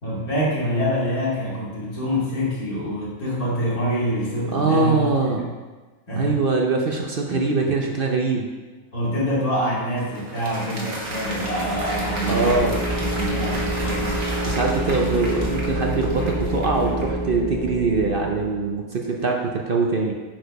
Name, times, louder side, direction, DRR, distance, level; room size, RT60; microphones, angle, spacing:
voice 1, 0.0-5.5 6.1-6.4 7.3-7.5 8.9-14.2, equal, 85° left, -7 dB, 3.2 m, -26 dB
voice 2, 4.5-5.4 6.1-8.5 12.3-12.8 14.4-20.1, right 3 dB, 45° right, 1 dB, 0.8 m, -22 dB
Applause, 9.6-17.2, right 1 dB, 65° right, 2.0 m, -33 dB
sound 1, 11.0-18.7, right 1 dB, 30° right, 2.2 m, -28 dB
8.9 x 4.9 x 5.3 m, 1.3 s
omnidirectional pair, 1.5 m